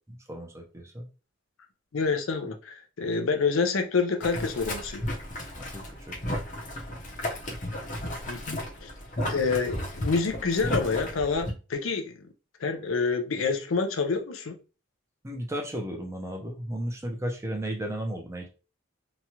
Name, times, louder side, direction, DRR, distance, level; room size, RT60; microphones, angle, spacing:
voice 1, 0.1-1.1 5.6-6.3 15.2-18.5, right 1 dB, 15° right, 0.6 m, -34 dB
voice 2, 1.9-5.0 8.3-8.9 9.3-12.2 12.6-14.5, left 4 dB, 75° left, 0.5 m, -27 dB
Boiling, 4.2-11.5, left 1 dB, 40° left, 0.8 m, -34 dB
3.0 x 2.3 x 2.8 m
head